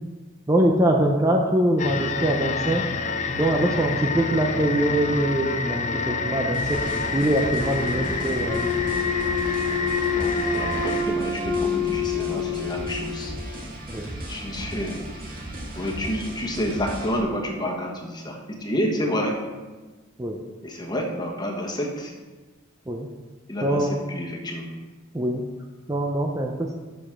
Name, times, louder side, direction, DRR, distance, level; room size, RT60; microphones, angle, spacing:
voice 1, 0.5-2.8 3.3-6.8 7.1-8.6 13.9-14.1 20.2-20.4 22.9-23.1 23.6-24.0 25.1-25.4 25.9-26.7, right 1 dB, 15° right, 1 dB, 0.6 m, -23 dB
sound 1, 1.8-11.0, left 4 dB, 35° left, 0.6 m, -28 dB
sound 2, 6.5-17.2, right 1 dB, 45° right, 2.1 m, -36 dB
Wind instrument woodwind instrument, 8.5-13.5, left 5 dB, 75° right, 1.5 m, -27 dB
voice 2, 10.2-13.3 14.3-15.1 15.7-19.4 20.6-22.1 23.5-24.7, equal, 20° left, 0 dB, 1.3 m, -29 dB
6.8 x 6.8 x 5.9 m, 1.3 s
head